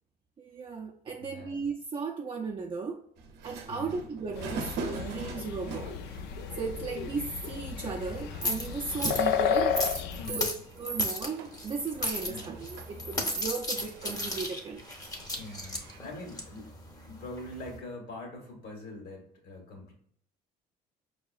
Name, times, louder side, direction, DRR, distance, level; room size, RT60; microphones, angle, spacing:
voice 1, 0.4-3.0 3.4-4.7 5.0-6.0 6.6-9.8 10.3-10.5 10.8-14.8, right 4 dB, 30° right, -1 dB, 0.5 m, -36 dB
voice 2, 1.2-1.7 3.7-4.0 10.1-10.6 12.2-12.7 15.3-16.7 17.0-19.9, left 2 dB, 65° left, 1 dB, 1.4 m, -43 dB
sound 1, 3.2-16.0, right 5 dB, 75° right, 0.6 m, -45 dB
sound 2, 4.4-10.3, left 7 dB, 85° left, 0.4 m, -32 dB
sound 3, 5.7-17.8, left 1 dB, 20° left, 0.8 m, -36 dB
4.8 x 2.8 x 2.4 m, 0.65 s
cardioid pair, 110°, 17 cm